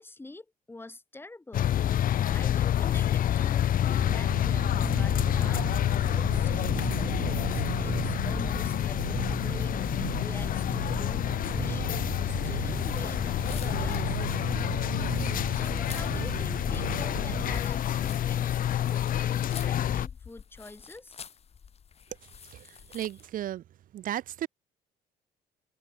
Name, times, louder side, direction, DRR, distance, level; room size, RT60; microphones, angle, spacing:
voice 1, 0.0-1.7 2.3-5.7 6.1-14.3 15.1-21.3, left 2 dB, 15° left, 6.6 m, -46 dB
sound 1, 1.5-20.1, left 11 dB, 55° left, 1.5 m, -28 dB
sound 2, 3.9-17.6, right 19 dB, 85° right, 1.3 m, -37 dB
sound 3, 12.7-23.3, left 7 dB, 40° left, 2.4 m, -46 dB
voice 2, 22.5-23.6 23.9-24.5, right 12 dB, 55° right, 0.7 m, -35 dB
cardioid pair, 110°, 17 cm